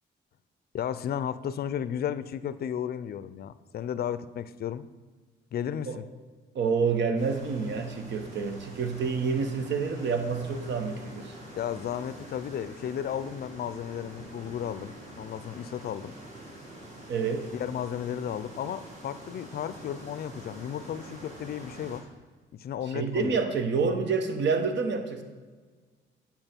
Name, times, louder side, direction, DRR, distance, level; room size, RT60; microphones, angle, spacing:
voice 1, 0.7-4.9 5.5-6.0 11.5-16.2 17.5-22.0 22.5-23.4, left 9 dB, 55° left, 14 dB, 0.4 m, -34 dB
voice 2, 6.5-11.4 17.1-17.5 22.9-25.2, right 5 dB, 65° right, 6 dB, 1.0 m, -28 dB
sound 1, 7.2-22.0, right 1 dB, 35° right, 2.4 m, -46 dB
8.8 x 5.6 x 4.4 m, 1.4 s
cardioid pair, 90°, 20 cm